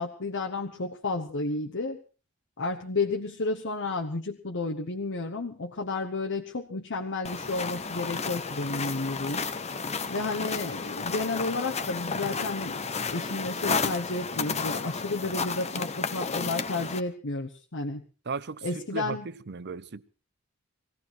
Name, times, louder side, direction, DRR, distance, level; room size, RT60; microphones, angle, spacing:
voice 1, 0.0-2.0 2.6-9.5 10.1-12.8 13.1-18.0 18.6-19.3, left 3 dB, 60° left, 1.2 m, -32 dB
sound 1, 7.2-17.0, left 5 dB, 30° left, 1.0 m, -32 dB
voice 2, 18.3-20.0, right 4 dB, 50° right, 0.7 m, -36 dB
20.5 x 16.0 x 4.5 m
head